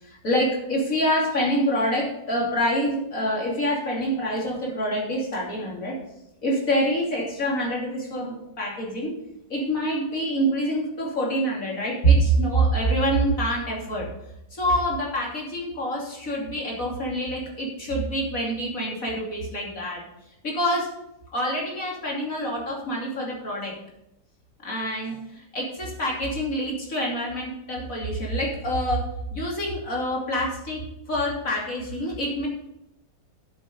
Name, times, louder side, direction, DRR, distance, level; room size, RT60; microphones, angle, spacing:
voice 1, 0.1-6.0 6.4-9.1 9.5-14.1 14.5-20.0 20.4-20.9 21.3-23.7 24.6-29.0 29.3-30.8 31.1-32.5, right 1 dB, 50° left, -3 dB, 3.3 m, -26 dB
10.5 x 7.5 x 5.3 m, 0.84 s
omnidirectional pair, 1.9 m